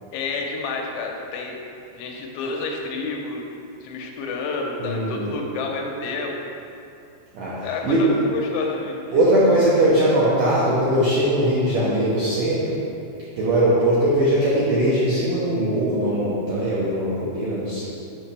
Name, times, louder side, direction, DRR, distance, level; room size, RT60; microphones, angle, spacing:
voice 1, 0.1-1.6 1.9-3.4 3.8-6.3 7.6-9.2 9.5-9.6, left 4 dB, 90° left, 1 dB, 3.1 m, -29 dB
voice 2, 4.8-5.3 7.3-8.0 9.1-12.8 13.4-17.8, right 1 dB, 80° right, -9 dB, 1.9 m, -20 dB
8.2 x 5.8 x 3.4 m, 2.7 s
omnidirectional pair, 5.2 m